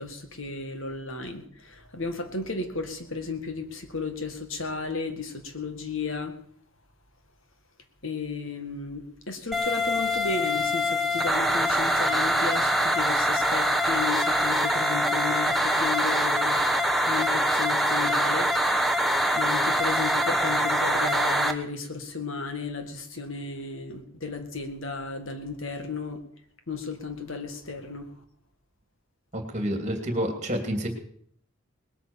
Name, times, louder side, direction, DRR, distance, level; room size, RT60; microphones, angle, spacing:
voice 1, 0.0-6.4 8.0-16.8 17.0-18.6 19.4-26.2 26.7-28.2, left 4 dB, 70° left, 7 dB, 2.0 m, -34 dB
sound 1, 9.5-21.5, equal, ahead, 1.0 m, -24 dB
voice 2, 29.3-30.9, equal, 35° right, 5 dB, 2.8 m, -29 dB
19.5 x 8.6 x 7.2 m, 0.65 s
head